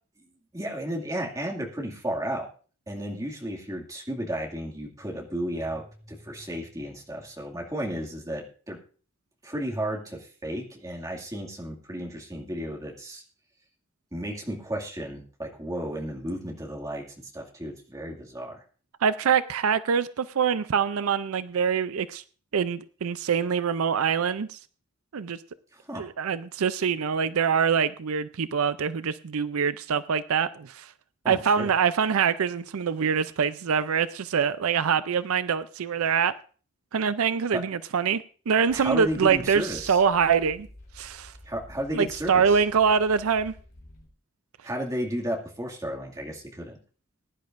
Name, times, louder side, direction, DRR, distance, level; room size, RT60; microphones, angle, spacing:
voice 1, 0.5-2.5 2.9-8.8 9.4-13.2 14.1-17.0 17.3-18.6 25.7-26.0 31.2-31.7 37.5-37.6 38.7-40.0 41.5-42.6 44.6-46.8, equal, 15° right, -1 dB, 2.2 m, -33 dB
voice 2, 19.0-22.2 22.5-24.6 25.1-25.4 25.9-30.9 31.3-36.3 36.9-40.7 41.0-41.3 41.9-43.5, right 6 dB, 80° right, 14 dB, 0.5 m, -24 dB
sound 1, 38.7-44.1, left 1 dB, 40° left, 3.5 m, -49 dB
21.0 x 10.5 x 2.6 m, 0.40 s
head